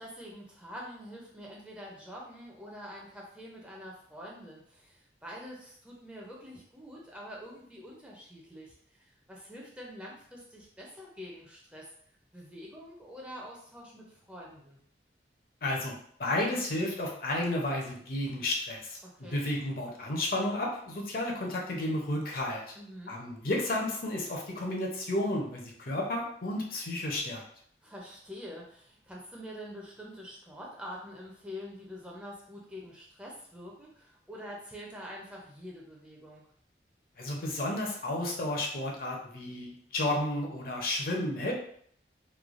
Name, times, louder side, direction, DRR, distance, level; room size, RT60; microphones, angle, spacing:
voice 1, 0.0-11.9 12.3-14.8 19.0-19.4 22.8-23.2 27.8-36.4, equal, 5° right, -3 dB, 0.4 m, -46 dB
voice 2, 15.6-15.9 16.2-22.7 23.1-27.4 37.2-41.5, left 1 dB, 55° left, 0 dB, 0.6 m, -32 dB
3.1 x 2.2 x 2.4 m, 0.62 s
head